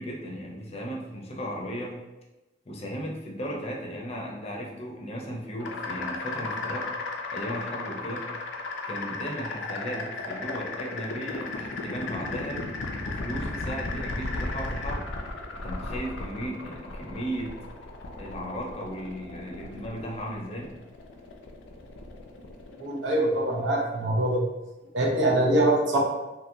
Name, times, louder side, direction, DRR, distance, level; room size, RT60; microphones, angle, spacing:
voice 1, 0.0-1.9 2.7-6.9 7.3-8.3 8.8-12.7 13.0-15.1 15.6-17.5 18.2-20.7, equal, 35° left, -1 dB, 0.6 m, -36 dB
sound 1, 5.6-24.3, left 3 dB, 90° left, 0.4 m, -35 dB
voice 2, 22.8-24.4 24.9-26.0, right 1 dB, 75° right, -1 dB, 0.7 m, -23 dB
2.9 x 2.7 x 2.6 m, 1.0 s
head